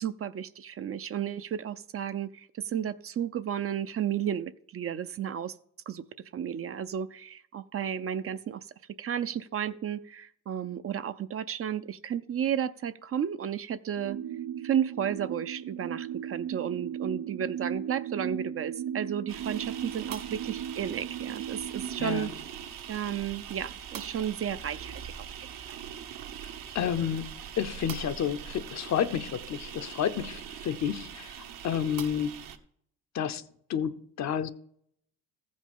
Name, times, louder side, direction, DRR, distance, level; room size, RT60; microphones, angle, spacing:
voice 1, 0.0-5.6 5.9-6.0 6.3-8.7 9.0-14.2 14.6-22.3 22.9-25.1 25.7-25.8, right 9 dB, 40° right, 0.5 m, -33 dB
sound 1, 14.0-22.2, right 9 dB, 90° right, 1.1 m, -37 dB
sound 2, 19.3-32.6, right 9 dB, 65° right, 1.1 m, -42 dB
voice 2, 22.0-22.3 26.7-32.4 33.1-33.4 33.7-34.5, left 8 dB, 50° left, 0.7 m, -30 dB
14.5 x 5.3 x 5.4 m
supercardioid pair, 85°, 36 cm